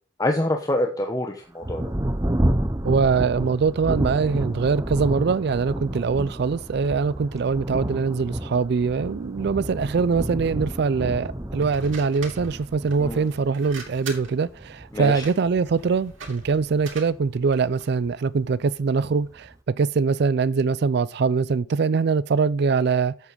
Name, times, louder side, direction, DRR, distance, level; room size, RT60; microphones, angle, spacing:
voice 1, 0.2-1.8 13.0-13.2 14.9-15.2, left 1 dB, 20° left, 0.9 m, -25 dB
Thunder, 1.6-17.7 18.4-18.5 19.1-19.5, right 1 dB, 15° right, 0.8 m, -30 dB
voice 2, 2.8-23.1, right 5 dB, 60° right, 0.4 m, -23 dB
sound 1, 11.6-18.0, right 5 dB, 85° right, 2.8 m, -43 dB
8.1 x 7.3 x 5.1 m
head